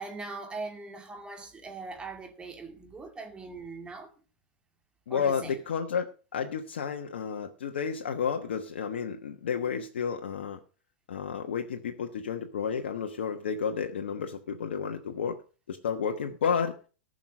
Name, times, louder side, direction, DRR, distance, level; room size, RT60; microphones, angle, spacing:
voice 1, 0.0-4.1 5.1-5.6, right 3 dB, 15° right, 2.4 m, -41 dB
voice 2, 5.1-10.6 11.1-15.4 15.7-16.8, left 6 dB, 75° left, 1.2 m, -31 dB
14.5 x 6.4 x 6.3 m
hypercardioid pair, 110°, 6 cm